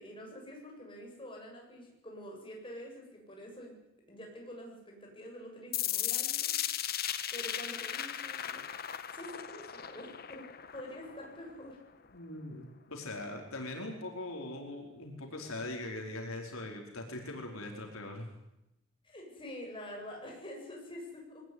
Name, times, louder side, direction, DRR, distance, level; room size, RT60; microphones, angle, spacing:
voice 1, 0.0-3.8 4.1-6.9 7.3-8.7 9.1-10.5 10.7-11.8 19.0-21.4, left 1 dB, 25° left, -1 dB, 7.9 m, -47 dB
sound 1, 5.7-11.7, left 11 dB, 45° left, 1.3 m, -36 dB
voice 2, 12.1-18.3, left 2 dB, 80° left, 2 dB, 4.7 m, -41 dB
22.0 x 19.5 x 9.8 m, 0.88 s
head